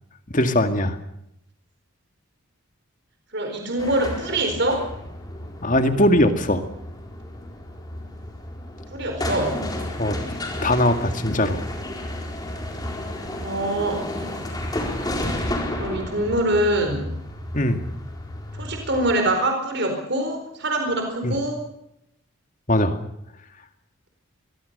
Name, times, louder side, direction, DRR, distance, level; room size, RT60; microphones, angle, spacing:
voice 1, 0.3-1.0 5.6-6.6 10.0-10.2 10.6-11.6 17.5-17.8 21.2-21.4 22.7-23.0, left 1 dB, 35° left, 7 dB, 2.1 m, -20 dB
voice 2, 3.3-4.9 8.9-9.6 13.4-14.0 15.8-17.1 18.5-21.6, right 1 dB, 50° right, 4 dB, 4.4 m, -24 dB
sound 1, 3.8-19.1, left 1 dB, 20° left, 4.3 m, -32 dB
25.0 x 22.0 x 6.8 m, 0.80 s
head